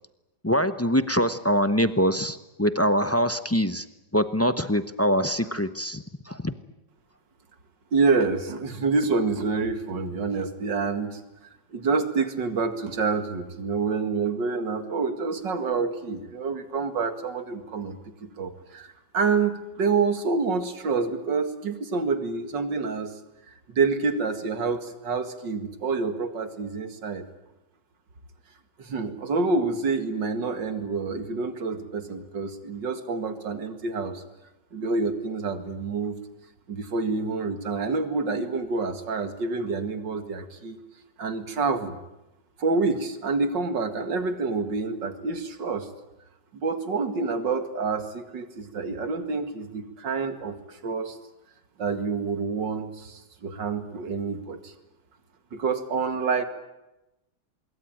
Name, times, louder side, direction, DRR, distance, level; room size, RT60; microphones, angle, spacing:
voice 1, 0.4-3.9 4.1-6.6, equal, 20° left, 11 dB, 0.3 m, -24 dB
voice 2, 7.9-11.2 11.7-23.1 23.7-27.3 28.8-34.2 34.7-36.2 36.7-40.8 41.2-42.0 42.6-45.9 46.5-51.2 51.8-54.7 55.5-56.4, right 4 dB, 90° right, 9 dB, 2.7 m, -27 dB
25.0 x 23.0 x 9.1 m, 0.95 s
omnidirectional pair, 1.9 m